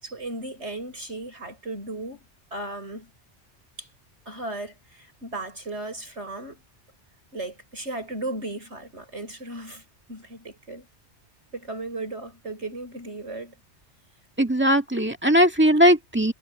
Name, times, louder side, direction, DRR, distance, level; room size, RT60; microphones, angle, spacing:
voice 1, 0.0-2.3 2.5-3.1 3.8-3.9 4.3-6.6 7.3-10.9 11.5-13.6, right 2 dB, 80° right, 7.0 m, -36 dB
voice 2, 14.4-16.3, equal, 10° right, 2.0 m, -19 dB
omnidirectional pair, 1.2 m